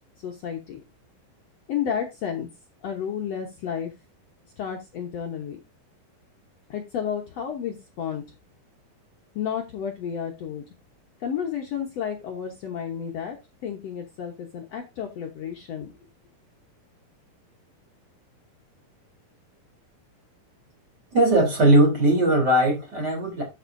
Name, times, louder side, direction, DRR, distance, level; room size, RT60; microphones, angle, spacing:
voice 1, 0.2-0.8 1.7-2.5 2.8-3.9 4.6-5.6 6.7-8.2 9.3-10.6 11.2-13.4 13.6-15.9, left 8 dB, 60° left, 1.8 m, -31 dB
voice 2, 21.1-23.4, right 1 dB, 30° right, 3.9 m, -19 dB
13.0 x 7.1 x 2.6 m
omnidirectional pair, 4.1 m